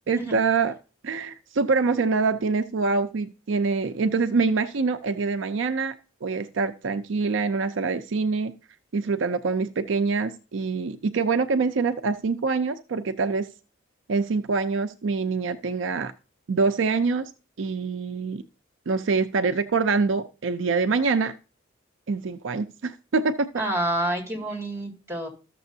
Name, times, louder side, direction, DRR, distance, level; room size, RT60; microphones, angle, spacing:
voice 1, 0.1-0.7 1.0-5.9 6.2-8.6 8.9-13.5 14.1-16.1 16.5-17.3 17.6-18.4 18.9-21.4 22.1-23.5, right 4 dB, 70° right, 9 dB, 0.5 m, -25 dB
voice 2, 23.6-25.3, right 1 dB, 15° right, 0 dB, 2.3 m, -28 dB
13.0 x 6.8 x 2.7 m, 0.34 s
head